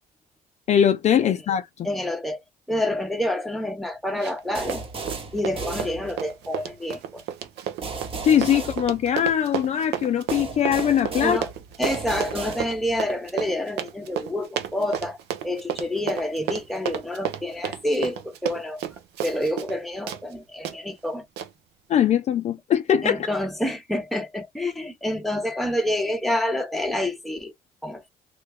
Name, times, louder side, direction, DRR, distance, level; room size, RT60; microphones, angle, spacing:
voice 1, 0.7-1.9 8.2-11.4 21.9-23.2, left 9 dB, 40° left, 0.4 m, -21 dB
voice 2, 1.8-2.4 2.7-4.8 5.3-7.2 11.2-11.5 11.8-15.2 15.4-18.8 19.2-21.2 23.0-27.5 27.8-28.1, left 1 dB, ahead, 0.7 m, -28 dB
Run, 4.2-4.4 4.7-19.8 20.1-20.2 20.6-20.8 21.4-21.5, right 10 dB, 80° right, 0.7 m, -32 dB
sound 1, 4.5-6.5 7.8-9.6 10.3-13.1, right 4 dB, 35° right, 1.0 m, -35 dB
3.2 x 2.2 x 3.3 m
cardioid pair, 110°, 17 cm